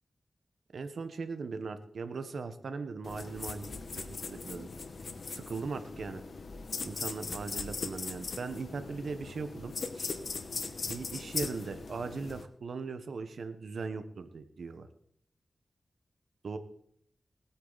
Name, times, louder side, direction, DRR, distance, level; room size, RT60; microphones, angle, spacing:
voice 1, 0.7-4.7 5.3-6.2 6.8-10.2 10.8-14.9 16.4-16.6, right 4 dB, 85° right, 10 dB, 1.1 m, -39 dB
sound 1, 3.0-12.4, left 4 dB, 75° left, 1.1 m, -39 dB
20.0 x 8.6 x 4.0 m, 0.65 s
cardioid pair, 50°, 0 cm